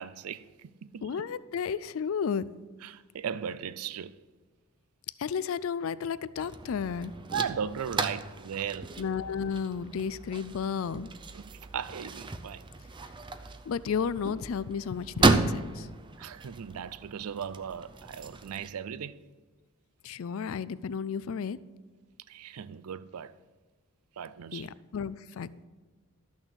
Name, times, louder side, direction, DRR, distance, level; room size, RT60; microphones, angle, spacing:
voice 1, 0.0-1.1 2.8-4.1 7.3-8.9 11.3-12.6 16.2-19.2 22.3-23.4 24.2-24.7, right 7 dB, 85° right, 0.4 m, -37 dB
voice 2, 1.0-2.5 5.2-7.1 9.0-11.1 13.7-15.9 20.0-21.6 24.5-25.6, left 6 dB, 65° left, 0.4 m, -33 dB
sound 1, 6.4-18.7, right 3 dB, 20° right, 0.5 m, -33 dB
13.0 x 6.3 x 6.2 m
head